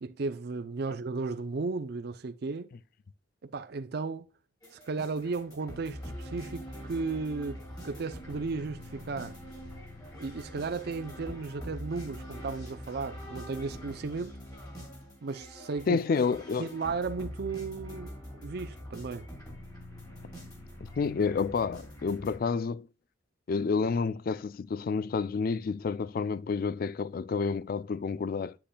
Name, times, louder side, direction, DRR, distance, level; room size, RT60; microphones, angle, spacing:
voice 1, 0.0-2.7 3.4-4.3 4.7-9.4 10.2-14.4 15.2-16.0 16.6-19.3, right 4 dB, 55° right, 0.5 m, -35 dB
sound 1, 4.6-22.4, equal, 20° left, 2.8 m, -44 dB
voice 2, 15.9-16.7 21.0-22.9 23.5-28.5, left 5 dB, 50° left, 0.3 m, -29 dB
8.4 x 7.7 x 2.2 m
head